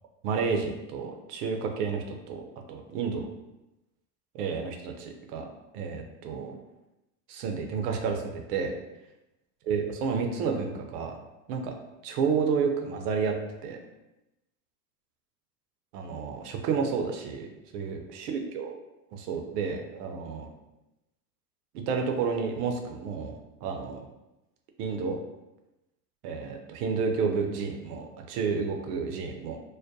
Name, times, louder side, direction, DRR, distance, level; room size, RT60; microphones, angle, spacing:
voice 1, 0.2-2.4 2.7-3.3 4.3-5.5 5.7-6.6 7.3-8.7 9.7-11.2 11.5-11.7 12.0-13.3 13.6-13.8 15.9-17.5 17.7-18.7 19.1-20.5 21.9-23.3 23.6-24.0 24.8-25.2 26.2-29.6, right 5 dB, 70° right, 3 dB, 0.6 m, -30 dB
2.3 x 2.1 x 2.6 m, 0.95 s
hypercardioid pair, 85°, 48 cm